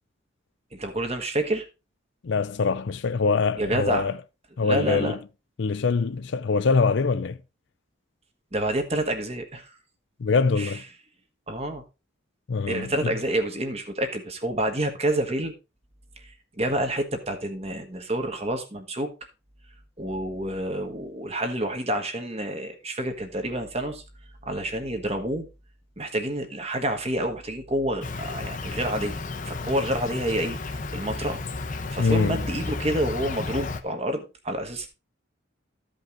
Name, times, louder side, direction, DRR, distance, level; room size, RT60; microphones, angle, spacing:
voice 1, 0.7-1.7 3.6-4.1 4.6-5.1 8.5-9.7 10.6-10.8 11.5-11.8 12.7-15.5 16.2-19.1 20.0-24.0 24.4-25.5 26.0-30.6 30.9-31.4 31.7-34.9, right 1 dB, 30° right, 1.5 m, -28 dB
voice 2, 2.2-4.2 4.6-5.2 5.6-7.4 10.2-10.8 12.5-13.2 32.0-32.4, left 4 dB, 60° left, 0.5 m, -24 dB
Insect, 28.0-33.8, left 3 dB, 40° left, 0.8 m, -33 dB
13.5 x 5.3 x 3.8 m
head